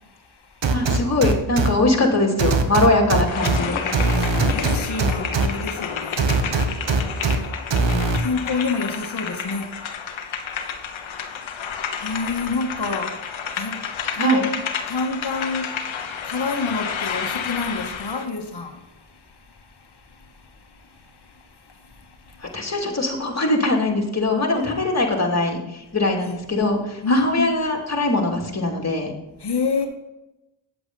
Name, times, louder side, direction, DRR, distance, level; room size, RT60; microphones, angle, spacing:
voice 1, 0.0-0.7 3.1-3.2 3.5-14.5 14.9-22.6 24.6-24.8 26.2-26.4 27.0-27.6 29.4-29.9, left 4 dB, 60° left, 1.6 m, -30 dB
sound 1, 0.6-1.7 2.4-3.6 3.9-5.5 6.2-7.4 7.7-8.2, right 4 dB, 70° right, 1.3 m, -20 dB
voice 2, 0.7-3.8 14.2-14.4 22.4-29.1, left 2 dB, 35° left, 2.8 m, -22 dB
sound 2, 3.2-18.3, left 7 dB, 85° left, 1.1 m, -30 dB
9.4 x 7.9 x 4.1 m
cardioid pair, 55°, 46 cm